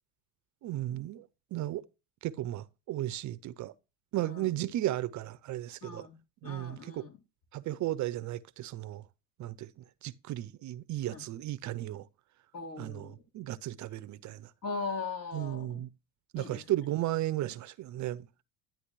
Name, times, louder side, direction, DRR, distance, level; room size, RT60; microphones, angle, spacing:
voice 1, 0.6-1.8 2.2-3.7 4.1-6.1 6.4-7.1 7.5-9.0 9.4-9.7 10.0-12.1 12.8-14.5 15.3-15.9 16.3-18.3, right 14 dB, 45° right, 0.6 m, -35 dB
voice 2, 5.8-6.2 6.4-7.2 11.1-11.2 12.5-13.2 14.6-15.8 16.4-16.6, left 4 dB, 55° left, 3.9 m, -39 dB
11.5 x 9.2 x 3.1 m
supercardioid pair, 95°, 41 cm